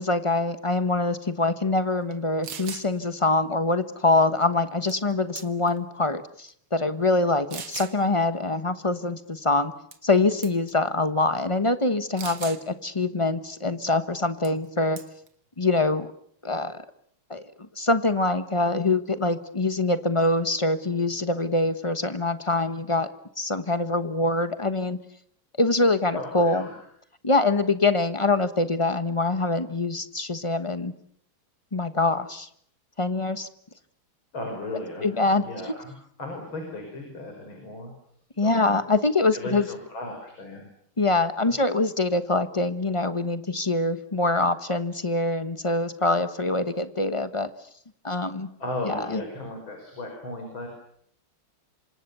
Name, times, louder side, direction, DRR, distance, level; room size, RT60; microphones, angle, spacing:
voice 1, 0.0-9.7 10.0-15.0 15.6-16.1 16.4-16.8 17.3-23.1 23.4-25.0 25.6-26.6 27.2-30.9 31.7-32.5 33.0-33.5 35.0-35.4 38.4-39.7 41.0-47.5 48.0-48.5 48.8-49.2, left 2 dB, 20° left, 11 dB, 0.8 m, -24 dB
sound 1, 2.1-2.2 2.4-2.9 4.9-5.1 5.4-5.8 6.5-6.6 7.5-8.0 9.9-10.2 10.4-10.7 12.2-12.6 14.5-14.7 15.0-15.3, right 7 dB, 80° right, 2.6 m, -38 dB
voice 2, 26.1-26.8 34.3-35.9 36.2-37.9 38.4-38.8 39.3-40.7 41.4-41.6 48.6-50.7, left 2 dB, 65° left, 3 dB, 6.2 m, -36 dB
27.5 x 25.5 x 6.9 m, 0.68 s
omnidirectional pair, 2.3 m